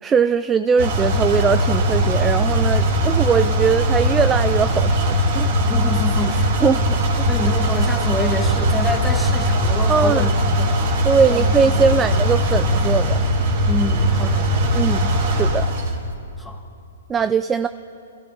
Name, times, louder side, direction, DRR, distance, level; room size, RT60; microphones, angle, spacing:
voice 1, 0.0-5.5 6.6-7.3 9.9-10.3 11.0-13.3 14.7-15.7 17.1-17.7, right 6 dB, 15° right, 12 dB, 0.3 m, -20 dB
sound 1, 0.8-15.9, equal, 55° right, 2.4 m, -19 dB
voice 2, 5.6-6.6 7.2-10.8 11.3-12.0 13.6-14.9 16.4-16.6, left 1 dB, 5° left, 2 dB, 1.6 m, -28 dB
27.0 x 15.0 x 3.6 m, 2.6 s
hypercardioid pair, 145°, 0 cm